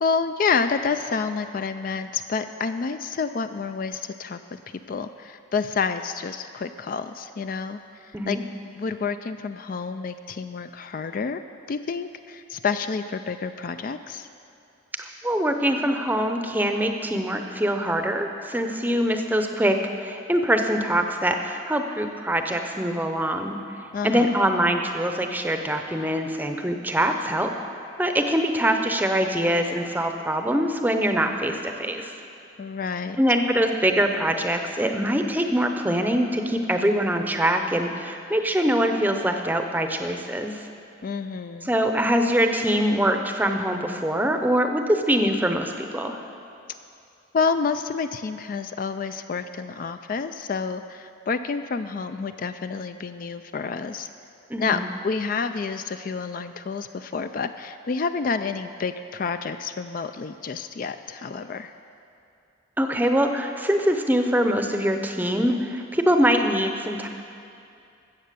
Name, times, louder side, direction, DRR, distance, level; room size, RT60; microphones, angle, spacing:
voice 1, 0.0-8.4 8.8-11.4 11.7-14.3 23.9-24.4 32.6-33.2 41.0-41.7 47.3-54.1 54.6-61.7, left 5 dB, 45° left, 9 dB, 0.3 m, -29 dB
voice 2, 15.2-23.6 24.0-27.5 28.0-32.1 33.2-40.6 41.6-46.2 54.5-54.8 62.8-67.1, equal, 10° right, 5 dB, 0.7 m, -23 dB
14.0 x 7.9 x 6.8 m, 2.6 s
head